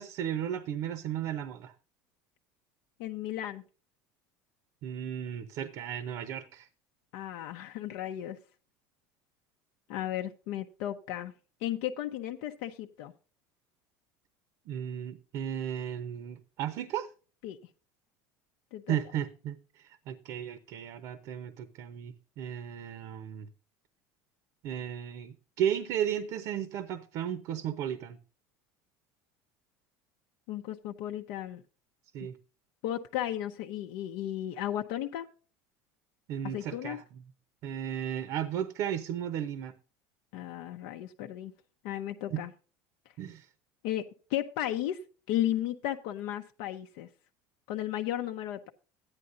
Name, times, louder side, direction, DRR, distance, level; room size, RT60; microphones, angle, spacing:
voice 1, 0.0-1.7 4.8-6.7 14.7-17.1 18.9-23.5 24.6-28.2 32.1-32.4 36.3-37.2 37.6-39.7 42.3-42.4 43.2-43.5, right 9 dB, 50° right, 0.8 m, -35 dB
voice 2, 3.0-3.6 7.1-8.4 9.9-11.3 11.6-13.1 17.4-17.6 18.7-19.0 30.5-31.6 32.2-32.3 32.8-35.3 36.4-37.0 40.3-41.5 41.8-42.5 43.8-45.0 45.3-47.1 47.7-48.7, left 12 dB, 65° left, 0.7 m, -34 dB
13.5 x 9.8 x 2.6 m
cardioid pair, 155°, 7 cm